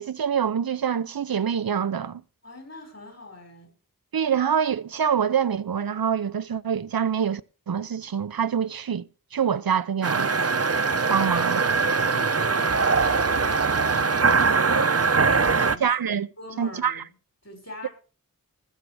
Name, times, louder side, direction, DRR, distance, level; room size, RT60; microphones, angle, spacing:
voice 1, 0.0-2.2 4.1-7.4 7.7-10.3 11.1-11.6 15.8-16.3 16.6-17.0 17.8-17.9, right 7 dB, 90° right, 0.6 m, -25 dB
voice 2, 2.4-3.7 11.0-15.1 15.4-17.0 17.4-17.9, left 1 dB, 45° left, 6.2 m, -43 dB
sound 1, 10.0-15.8, right 4 dB, 45° right, 0.8 m, -22 dB
20.0 x 7.4 x 4.9 m
wide cardioid pair, 55°, 34 cm